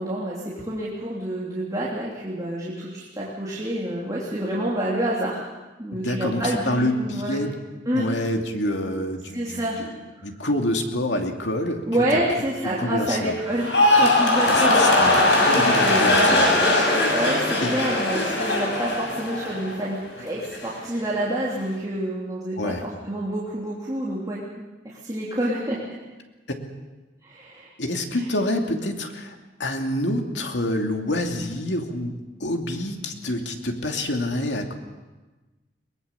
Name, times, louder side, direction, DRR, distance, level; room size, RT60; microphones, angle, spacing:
voice 1, 0.0-5.4 5.8-7.4 7.9-8.1 9.3-9.8 10.2-10.3 11.8-15.2 15.5-16.4 17.1-25.8 27.2-27.7 28.1-28.2, right 1 dB, 20° right, -6 dB, 3.2 m, -28 dB
voice 2, 5.9-7.6 7.9-9.9 10.2-11.9 12.1-12.2 12.6-13.3 14.5-16.5 17.6-17.7 22.6-22.8 27.8-29.3 29.6-32.1 32.4-34.7, left 1 dB, 90° left, 3 dB, 2.6 m, -27 dB
sound 1, 13.5-19.9 20.2-20.7, left 2 dB, 75° left, 6.6 m, -20 dB
22.5 x 20.0 x 7.0 m, 1.2 s
head